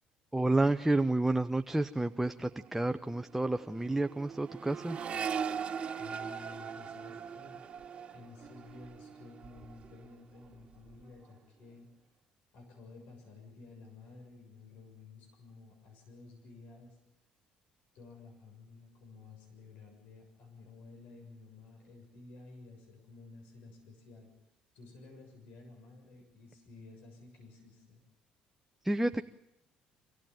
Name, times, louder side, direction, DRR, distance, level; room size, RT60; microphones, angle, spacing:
voice 1, 0.3-5.0 28.8-29.2, right 2 dB, 5° right, 8 dB, 0.7 m, -30 dB
Accelerating revving vroom, 2.6-10.1 10.4-11.0, right 7 dB, 40° right, 2.3 m, -41 dB
voice 2, 6.0-7.6 8.1-11.9 12.5-17.0 17.9-24.3 24.7-28.0, left 3 dB, 75° left, 3 dB, 7.0 m, -53 dB
26.0 x 15.5 x 9.1 m, 0.88 s
supercardioid pair, 85°, 3 cm